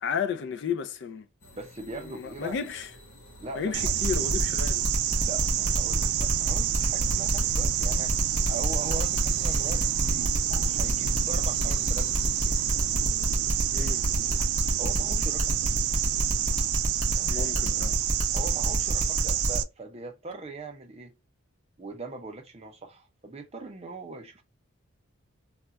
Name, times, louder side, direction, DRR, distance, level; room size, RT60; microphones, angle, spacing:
voice 1, 0.0-1.3 2.0-2.9 3.6-4.8 13.7-14.0 17.3-18.0, left 6 dB, 55° left, 0.3 m, -32 dB
sound 1, 1.4-16.7, equal, 90° left, 1.0 m, -48 dB
voice 2, 1.5-2.6 3.4-3.9 5.2-8.1 8.5-12.6 14.8-15.7 17.1-17.8 18.3-21.2 21.8-24.4, right 2 dB, 30° right, 0.5 m, -41 dB
sound 2, 3.7-19.6, right 12 dB, 85° right, 0.3 m, -28 dB
sound 3, 3.8-19.6, equal, 35° left, 0.8 m, -29 dB
2.3 x 2.2 x 3.9 m
head